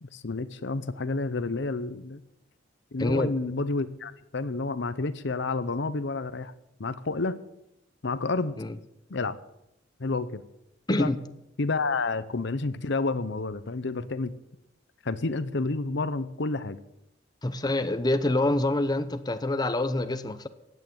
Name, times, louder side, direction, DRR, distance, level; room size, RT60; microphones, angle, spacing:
voice 1, 0.0-2.2 2.9-6.5 6.8-7.4 8.0-8.6 9.1-9.4 10.0-10.4 10.9-11.1 11.6-14.3 15.0-16.8, left 3 dB, 65° left, 0.8 m, -30 dB
voice 2, 3.0-3.4 8.6-8.8 10.9-11.2 17.4-20.5, left 2 dB, 20° left, 0.8 m, -26 dB
16.0 x 9.4 x 7.9 m
head